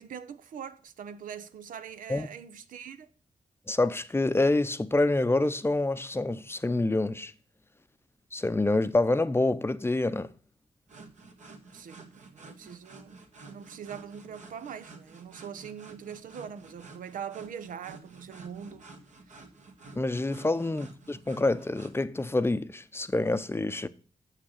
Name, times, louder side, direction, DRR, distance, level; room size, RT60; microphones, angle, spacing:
voice 1, 0.0-3.1 11.7-13.2 13.5-18.9 19.3-19.4 20.6-20.8, right 8 dB, 85° right, 0.7 m, -42 dB
voice 2, 3.7-7.3 8.3-10.3 20.0-23.9, left 2 dB, 20° left, 0.6 m, -27 dB
sound 1, 10.9-22.0, right 3 dB, 65° right, 1.6 m, -51 dB
7.4 x 6.1 x 6.4 m
cardioid pair, 70°, 13 cm